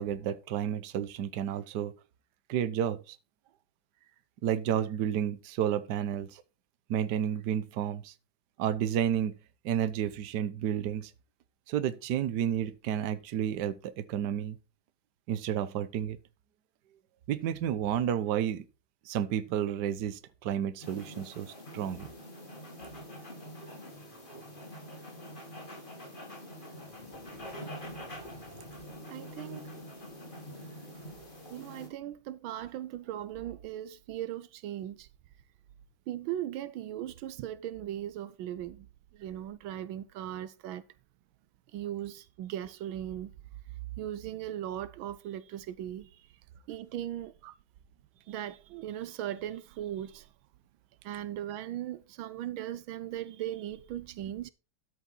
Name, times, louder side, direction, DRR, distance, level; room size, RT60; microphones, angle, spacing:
voice 1, 0.0-1.9 2.5-3.2 4.4-6.4 6.9-8.1 8.6-9.4 9.6-11.1 11.7-14.6 15.3-16.2 17.3-18.6 19.1-22.1 28.5-28.6 47.4-47.5, right 9 dB, 65° right, 1.4 m, -31 dB
sound 1, 20.8-31.9, equal, 25° left, 3.2 m, -45 dB
voice 2, 29.1-29.7 31.5-35.1 36.1-38.9 39.2-40.8 41.7-43.3 44.0-46.1 46.7-47.3 48.3-50.2 51.0-54.5, right 11 dB, 80° right, 1.5 m, -38 dB
12.5 x 7.0 x 3.9 m
omnidirectional pair, 2.2 m